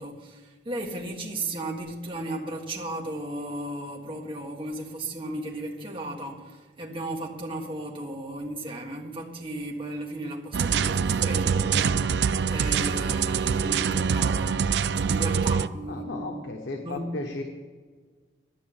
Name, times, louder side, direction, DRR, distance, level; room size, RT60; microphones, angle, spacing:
voice 1, 0.0-14.6 15.1-16.4 16.8-17.2, right 1 dB, 30° right, -1 dB, 1.5 m, -35 dB
sound 1, 10.5-15.7, right 6 dB, 70° right, 0.4 m, -24 dB
voice 2, 15.9-17.4, left 2 dB, 90° left, 3 dB, 1.2 m, -35 dB
12.0 x 6.6 x 8.8 m, 1.5 s
head